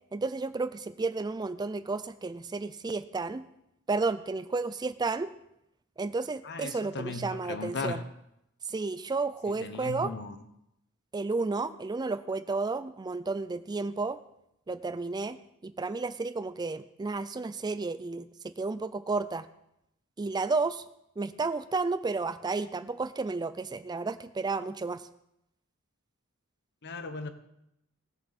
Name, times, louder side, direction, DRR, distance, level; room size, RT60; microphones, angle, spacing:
voice 1, 0.1-3.5 3.9-5.3 6.0-8.0 8.6-10.1 11.1-14.2 14.7-15.4 15.6-19.5 20.2-20.8 21.2-25.1, right 3 dB, 20° right, 14 dB, 0.4 m, -32 dB
voice 2, 6.4-8.0 9.6-10.4 26.8-27.3, left 3 dB, 50° left, 9 dB, 0.9 m, -36 dB
18.0 x 6.9 x 4.2 m, 0.81 s
head